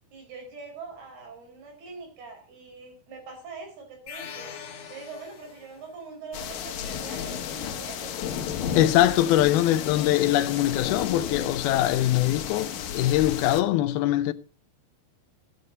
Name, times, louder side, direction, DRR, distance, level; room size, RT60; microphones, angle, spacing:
voice 1, 0.1-4.5 4.9-8.1 9.4-9.6, right 4 dB, 85° right, 6.5 m, -43 dB
sound 1, 4.1-6.0, left 7 dB, 50° left, 2.3 m, -42 dB
sound 2, 6.3-13.6, left 8 dB, 65° left, 2.7 m, -33 dB
voice 2, 8.8-14.3, left 14 dB, 80° left, 2.7 m, -22 dB
15.5 x 9.0 x 5.3 m
omnidirectional pair, 4.4 m